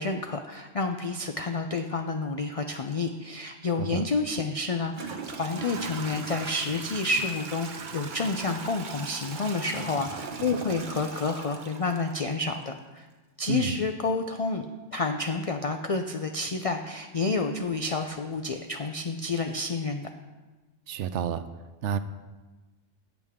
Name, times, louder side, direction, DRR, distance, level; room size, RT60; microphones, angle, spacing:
voice 1, 0.0-13.1 13.4-14.6 14.9-20.1, left 3 dB, 50° left, 5 dB, 0.4 m, -29 dB
Toilet flush / Trickle dribble, 4.1-4.2 4.9-12.7, right 5 dB, 45° right, 0.8 m, -39 dB
voice 2, 13.5-13.8 20.9-21.4 21.8-22.0, right 8 dB, 75° right, 12 dB, 0.9 m, -30 dB
14.0 x 8.3 x 3.6 m, 1.2 s
omnidirectional pair, 1.2 m